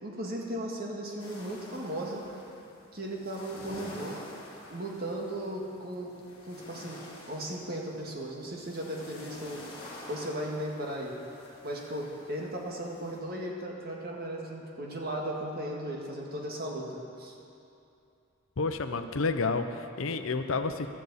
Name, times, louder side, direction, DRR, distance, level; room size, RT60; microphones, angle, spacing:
voice 1, 0.0-2.2 2.9-4.2 4.7-6.1 6.5-7.0 7.3-9.6 10.1-11.1 11.6-17.3, right 1 dB, 45° right, -1 dB, 1.8 m, -36 dB
sound 1, 1.2-13.2, left 1 dB, 25° left, 2.3 m, -49 dB
voice 2, 18.6-20.9, left 4 dB, 75° left, 8 dB, 0.7 m, -30 dB
15.5 x 13.0 x 4.2 m, 2.7 s
head